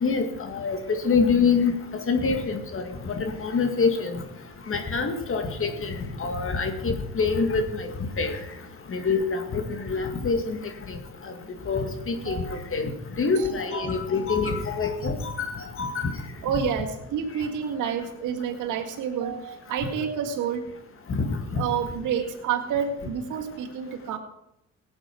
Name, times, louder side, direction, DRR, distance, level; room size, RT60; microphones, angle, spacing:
voice 1, 0.0-0.8 1.0-4.2 4.7-7.9 8.2-8.4 8.9-10.6 10.9-11.0 11.2-11.3 11.7-12.4 12.7-12.9 13.2-16.1 21.1-21.6, left 4 dB, 45° left, 6 dB, 2.1 m, -26 dB
voice 2, 12.2-12.7 13.4-13.9 16.4-20.7 21.5-24.2, right 7 dB, 85° right, 2 dB, 2.0 m, -29 dB
16.5 x 8.7 x 6.2 m, 0.86 s
cardioid pair, 90°, 30 cm